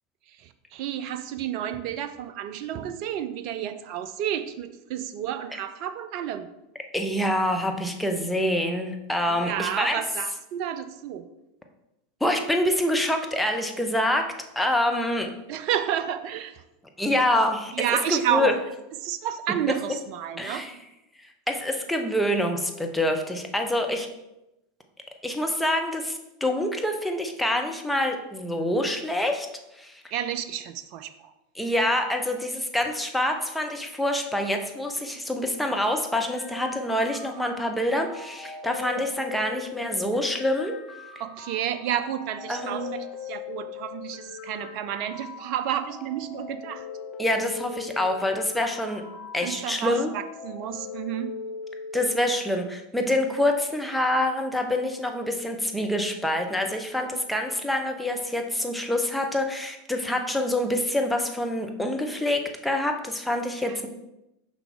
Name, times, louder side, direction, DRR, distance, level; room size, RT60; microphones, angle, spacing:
voice 1, 0.3-6.5 9.3-11.3 15.5-16.6 17.7-18.6 19.0-20.7 30.1-31.3 41.2-46.9 49.4-51.4 63.6-63.8, right 10 dB, 50° right, 11 dB, 0.4 m, -31 dB
voice 2, 6.9-10.0 12.2-14.2 14.6-15.3 17.0-17.7 18.1-18.5 20.4-20.7 21.5-24.1 25.2-29.5 29.7-30.0 31.6-40.7 42.5-42.9 47.2-49.0 49.3-50.1 51.9-63.9, left 1 dB, 5° left, 3 dB, 0.9 m, -26 dB
sound 1, 36.1-52.1, left 6 dB, 20° left, 1.3 m, -40 dB
5.9 x 5.7 x 3.6 m, 0.92 s
figure-of-eight pair, 85°, 0 cm